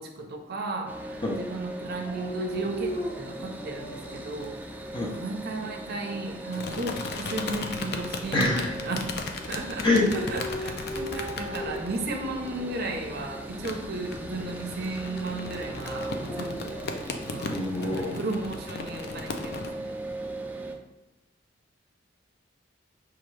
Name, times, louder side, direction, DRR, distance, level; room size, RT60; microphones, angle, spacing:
voice 1, 0.0-4.6 5.0-9.1 9.5-16.8 17.3-20.0, right 2 dB, 55° right, 2 dB, 0.6 m, -35 dB
sound 1, 0.9-20.8, right 1 dB, 10° right, 0.3 m, -39 dB
Dog, 2.0-4.3 4.9-5.6 9.8-12.1 12.9-13.3 15.9-17.2, equal, 40° left, 1.2 m, -38 dB
sound 2, 4.4-5.2 6.5-19.7, left 3 dB, 55° left, 0.4 m, -37 dB
voice 2, 8.3-8.7 9.8-10.1 17.5-18.2, left 2 dB, 25° left, -2 dB, 0.7 m, -25 dB
5.7 x 2.4 x 3.1 m, 1.0 s
head